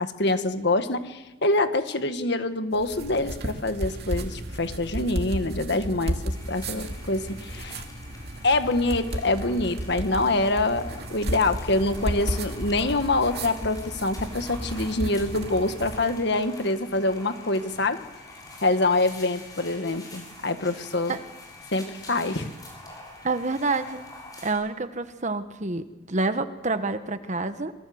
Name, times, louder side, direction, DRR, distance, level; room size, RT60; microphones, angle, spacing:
voice 1, 0.0-7.8 8.4-18.0 18.6-21.1 21.7-22.5, left 2 dB, 60° left, 9 dB, 1.7 m, -25 dB
sound 1, 2.7-16.2, right 1 dB, 55° right, 2.8 m, -34 dB
sound 2, 6.3-24.5, left 2 dB, 20° left, 7.5 m, -46 dB
voice 2, 23.2-24.1 24.4-27.7, right 3 dB, 40° right, 10 dB, 1.3 m, -28 dB
27.0 x 22.5 x 7.9 m, 1.1 s
head